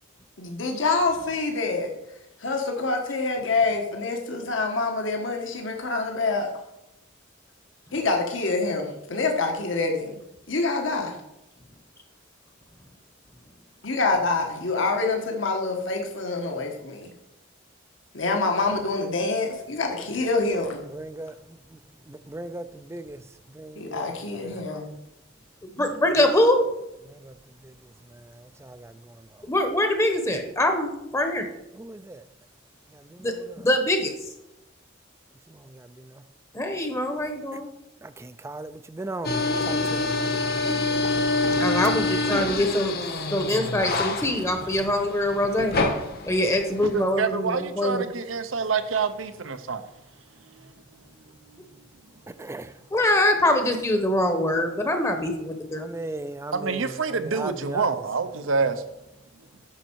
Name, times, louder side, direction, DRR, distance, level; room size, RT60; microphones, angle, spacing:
voice 1, 0.4-1.9 2.4-6.5 7.9-8.8 9.1-10.2 10.5-11.2 13.8-17.1 18.1-20.8 23.8-24.9, left 3 dB, 70° left, 1.4 m, -26 dB
voice 2, 20.8-21.8 22.1-23.2 23.5-24.6 27.0-27.4 27.6-27.8 28.1-29.2 31.7-32.2 32.9-33.6 35.5-36.2 38.0-40.1 52.3-52.7 55.8-57.9, right 2 dB, 15° right, 0.4 m, -38 dB
voice 3, 25.8-26.6 29.5-31.4 33.2-33.3 33.6-34.1 36.5-37.7 41.6-42.9 43.3-45.7 46.3-48.0 52.9-55.9, left 1 dB, 15° left, 0.9 m, -23 dB
sound 1, 39.2-47.0, left 2 dB, 50° left, 1.1 m, -26 dB
voice 4, 46.9-49.8 50.5-50.7 54.5-54.7 56.5-58.8, right 5 dB, 80° right, 0.8 m, -27 dB
9.3 x 6.4 x 4.6 m
head